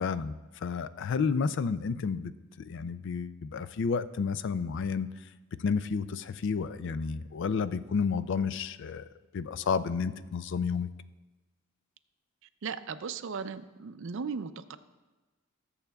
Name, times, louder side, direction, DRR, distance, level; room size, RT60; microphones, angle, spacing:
voice 1, 0.0-2.3 2.6-5.1 5.6-9.0 9.3-10.9, left 5 dB, 60° left, 14 dB, 0.4 m, -31 dB
voice 2, 12.6-14.8, right 5 dB, 65° right, 11 dB, 0.5 m, -37 dB
20.0 x 7.2 x 2.3 m, 1.2 s
head